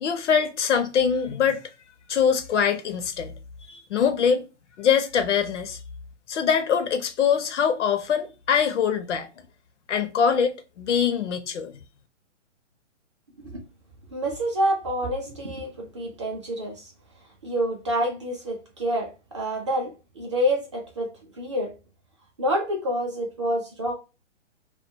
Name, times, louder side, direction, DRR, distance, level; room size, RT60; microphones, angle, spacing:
voice 1, 0.0-1.6 2.1-3.3 3.7-4.5 4.8-5.8 6.3-9.3 9.9-11.7, left 7 dB, 70° left, 0.6 m, -23 dB
voice 2, 14.1-16.9 17.4-21.7 22.4-23.9, equal, 25° right, 0.3 m, -28 dB
2.2 x 2.1 x 2.6 m
hypercardioid pair, 140°, 36 cm